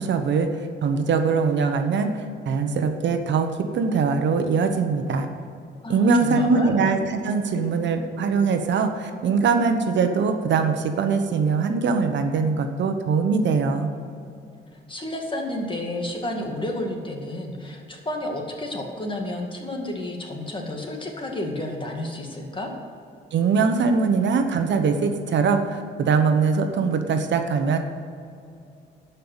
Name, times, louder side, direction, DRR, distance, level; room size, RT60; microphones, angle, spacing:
voice 1, 0.0-5.3 5.9-13.9 23.3-27.8, right 5 dB, 65° right, 6 dB, 1.1 m, -22 dB
voice 2, 5.8-6.8 14.7-22.7, left 1 dB, 25° left, 1 dB, 2.1 m, -31 dB
11.5 x 5.6 x 8.0 m, 2.5 s
cardioid pair, 90°, 20 cm